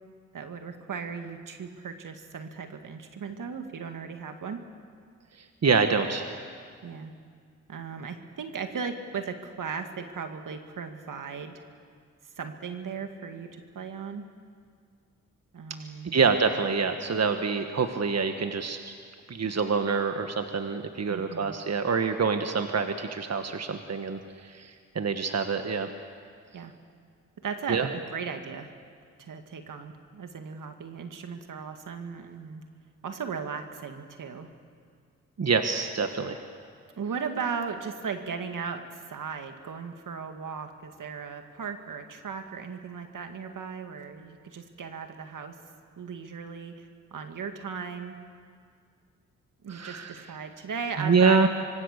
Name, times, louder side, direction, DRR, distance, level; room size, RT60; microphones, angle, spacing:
voice 1, 0.3-4.6 6.8-7.1 7.7-11.7 12.4-14.2 15.5-16.2 21.1-21.6 26.5-26.7 27.4-28.7 29.2-32.6 33.0-34.5 37.0-45.6 46.0-48.2 49.6-51.5, right 6 dB, 70° right, 6 dB, 2.0 m, -37 dB
voice 2, 5.6-6.4 16.1-18.9 19.3-25.9 27.7-27.9 35.4-36.4 49.7-50.1 51.0-51.5, right 5 dB, 50° right, 6 dB, 1.5 m, -26 dB
25.5 x 24.0 x 6.7 m, 2.1 s
supercardioid pair, 45°, 33 cm